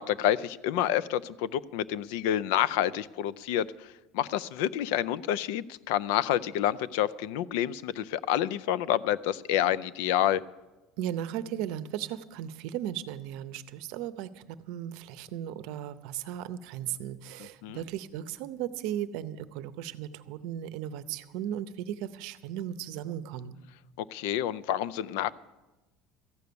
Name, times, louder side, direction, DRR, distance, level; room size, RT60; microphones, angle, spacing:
voice 1, 0.0-10.4 17.6-17.8 24.0-25.3, left 11 dB, 80° left, 18 dB, 0.4 m, -28 dB
voice 2, 11.0-23.6, right 11 dB, 65° right, 13 dB, 0.6 m, -36 dB
14.0 x 9.4 x 6.9 m, 1.1 s
cardioid pair, 165°, 0 cm